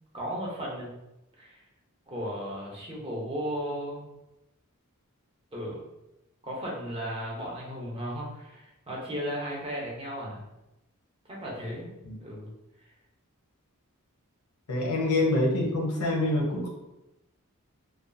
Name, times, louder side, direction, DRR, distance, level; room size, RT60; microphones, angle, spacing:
voice 1, 0.1-0.9 1.4-1.6 2.1-4.1 5.5-5.8 6.4-10.4 11.3-11.9 12.2-12.5 12.8-12.9, equal, 25° right, -4 dB, 0.6 m, -35 dB
voice 2, 14.7-16.7, left 1 dB, 90° left, 0 dB, 0.7 m, -26 dB
2.6 x 2.2 x 2.5 m, 0.94 s
head